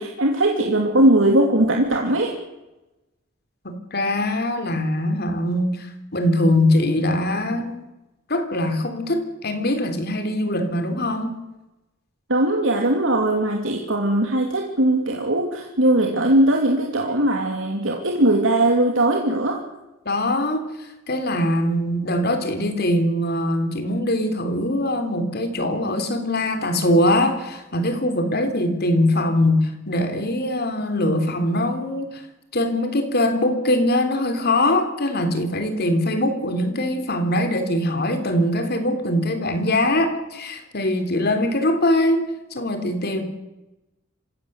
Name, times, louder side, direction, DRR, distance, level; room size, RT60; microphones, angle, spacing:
voice 1, 0.0-2.3 12.3-19.6, right 1 dB, 85° right, 1 dB, 2.9 m, -19 dB
voice 2, 3.6-5.9 6.1-7.8 8.3-11.3 20.1-20.6 21.1-32.2 32.5-42.3 42.5-43.2, left 1 dB, 55° left, 7 dB, 3.5 m, -22 dB
26.5 x 16.5 x 8.1 m, 1.0 s
head